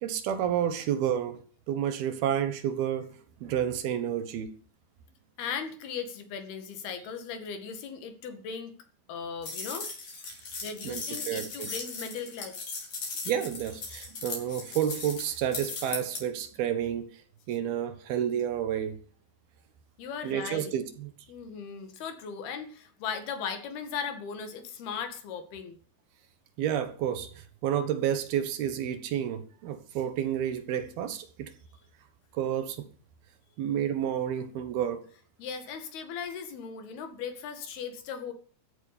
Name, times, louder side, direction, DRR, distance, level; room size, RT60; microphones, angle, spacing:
voice 1, 0.0-1.4 1.7-3.2 3.4-4.6 10.8-11.7 13.3-17.1 17.5-19.0 20.2-21.1 26.6-31.5 32.3-32.9 33.6-35.0, right 10 dB, 75° right, 3.2 m, -30 dB
voice 2, 5.4-8.7 9.1-9.9 10.6-12.6 20.0-20.7 21.3-25.8 35.4-38.3, left 6 dB, 75° left, 3.9 m, -37 dB
sound 1, 9.4-16.2, left 4 dB, 45° left, 5.3 m, -38 dB
14.5 x 8.3 x 8.6 m
omnidirectional pair, 4.6 m